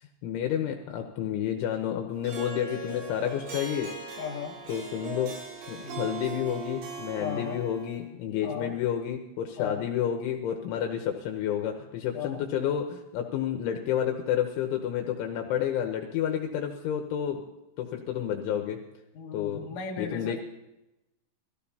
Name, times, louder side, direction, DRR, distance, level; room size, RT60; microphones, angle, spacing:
voice 1, 0.0-4.2 4.7-5.3 5.7-17.4 17.8-18.8 19.3-19.7 20.0-20.4, left 9 dB, 75° left, 3 dB, 3.1 m, -30 dB
Harp, 2.2-8.1, right 4 dB, 80° right, 4.9 m, -39 dB
voice 2, 4.2-4.6 5.8-6.1 7.2-7.6 8.4-8.7 9.6-9.8 12.1-12.4 19.1-20.4, left 6 dB, 60° left, -2 dB, 1.8 m, -36 dB
21.0 x 15.5 x 2.8 m, 0.93 s
omnidirectional pair, 5.9 m